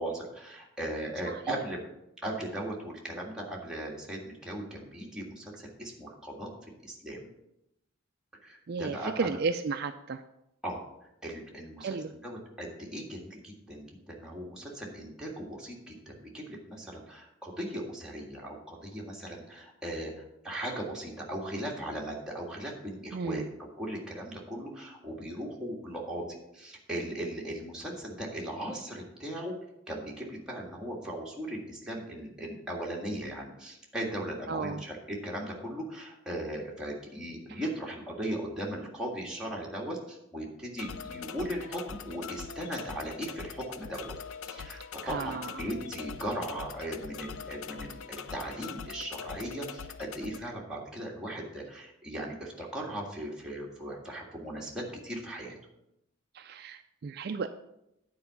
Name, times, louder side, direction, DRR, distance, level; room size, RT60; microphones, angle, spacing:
voice 1, 0.0-1.8 2.2-6.5 6.8-7.3 8.4-9.4 10.6-10.8 11.2-12.0 12.2-29.5 29.9-44.1 44.4-55.6, right 1 dB, 5° right, -3 dB, 1.8 m, -38 dB
voice 2, 8.7-10.2 11.8-12.1 23.1-23.5 34.5-34.8 37.5-37.6 45.0-45.6 56.3-57.5, right 4 dB, 50° right, 8 dB, 0.3 m, -34 dB
sound 1, 40.8-50.4, left 6 dB, 90° left, 0.5 m, -43 dB
9.3 x 4.7 x 6.8 m, 0.85 s
head